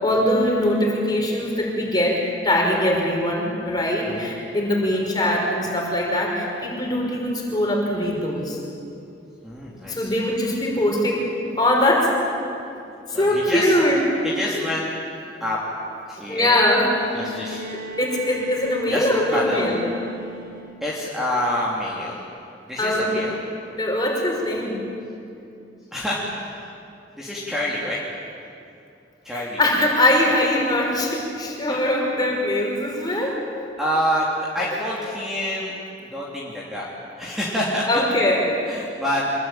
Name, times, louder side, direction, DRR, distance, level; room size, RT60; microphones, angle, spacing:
voice 1, 0.0-8.6 9.9-11.3 11.6-12.2 13.1-14.0 16.3-17.2 18.0-19.9 22.8-23.3 23.8-24.9 29.3-33.4 37.9-38.5, left 1 dB, 20° left, -1 dB, 5.5 m, -22 dB
voice 2, 9.4-10.2 13.1-13.7 14.2-14.9 15.4-15.6 16.1-16.6 17.1-17.6 18.9-19.1 19.3-19.7 20.8-22.2 22.7-23.4 25.9-26.5 27.1-28.0 29.2-29.6 31.7-31.8 33.1-33.3 33.8-35.7 36.0-36.9 37.2-38.0 38.6-39.2, left 1 dB, ahead, -6 dB, 3.1 m, -27 dB
Bowed string instrument, 17.0-21.0 22.3-22.4, equal, 50° right, 2.1 m, -38 dB
25.5 x 22.0 x 9.1 m, 2.6 s
head